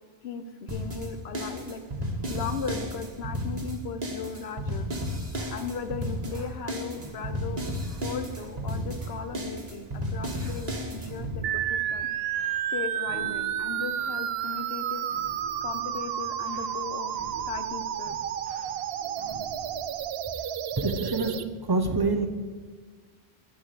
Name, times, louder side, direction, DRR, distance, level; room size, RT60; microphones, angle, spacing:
voice 1, 0.2-1.8 2.3-4.9 5.4-7.6 8.0-12.1 12.7-15.1 15.6-17.1 17.5-18.2, left 5 dB, 80° left, 9 dB, 1.1 m, -37 dB
sound 1, 0.7-11.4, equal, 40° right, 1.4 m, -33 dB
sound 2, 6.2-20.0, right 1 dB, 35° left, 3.0 m, -47 dB
sound 3, 11.4-21.4, right 10 dB, 75° right, 0.8 m, -31 dB
voice 2, 20.8-22.3, right 3 dB, 25° right, 6 dB, 0.8 m, -26 dB
8.8 x 7.1 x 6.7 m, 1.5 s
omnidirectional pair, 1.0 m